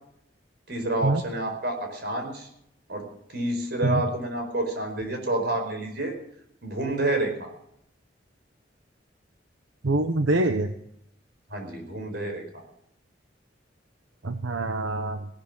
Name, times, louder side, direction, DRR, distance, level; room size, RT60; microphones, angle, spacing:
voice 1, 0.7-2.5 2.9-6.1 6.6-7.5 11.5-12.6, right 2 dB, 60° right, 4 dB, 4.9 m, -29 dB
voice 2, 9.8-10.7 14.2-15.3, right 2 dB, 85° right, 8 dB, 1.0 m, -25 dB
17.0 x 12.0 x 6.2 m, 0.74 s
head